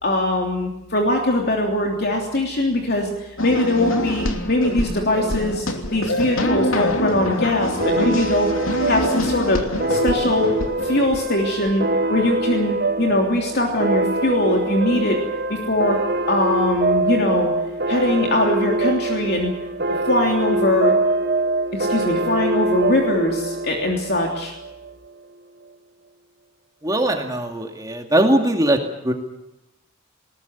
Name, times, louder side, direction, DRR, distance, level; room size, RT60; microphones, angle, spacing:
voice 1, 0.0-8.5 8.9-10.5 10.8-15.2 15.5-16.0 16.3-17.5 17.9-19.5 20.1-20.9 21.7-24.5, left 1 dB, 50° left, 1 dB, 3.2 m, -21 dB
sound 1, 3.4-11.7, left 1 dB, 85° left, 2.9 m, -25 dB
sound 2, 7.8-24.9, right 2 dB, 50° right, 1.5 m, -24 dB
voice 2, 26.8-29.1, right 1 dB, 20° right, 3 dB, 2.3 m, -20 dB
20.5 x 20.0 x 8.1 m, 0.90 s
head